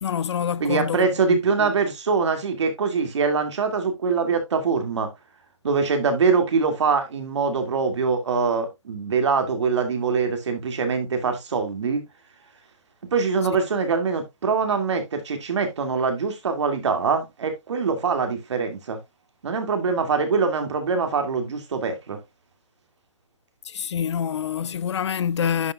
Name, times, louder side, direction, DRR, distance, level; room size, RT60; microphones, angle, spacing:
voice 1, 0.0-1.7 23.6-25.7, left 8 dB, 60° left, 0.4 m, -27 dB
voice 2, 0.6-5.1 5.6-12.0 13.1-19.0 19.4-22.2, right 5 dB, 65° right, 2.4 m, -23 dB
11.0 x 5.3 x 2.4 m
hypercardioid pair, 175°, 16 cm